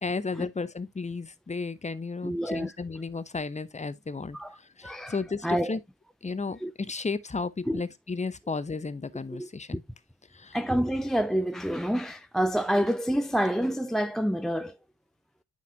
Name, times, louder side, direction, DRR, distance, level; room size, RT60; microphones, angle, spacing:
voice 1, 0.0-4.4 4.8-5.8 6.2-9.8 10.3-10.6, left 4 dB, 20° left, 0.8 m, -33 dB
voice 2, 2.2-2.7 4.3-5.8 6.6-6.7 7.7-7.8 9.3-9.8 10.5-14.8, equal, ahead, 0.4 m, -28 dB
9.3 x 5.3 x 2.6 m
hypercardioid pair, 45°, 39 cm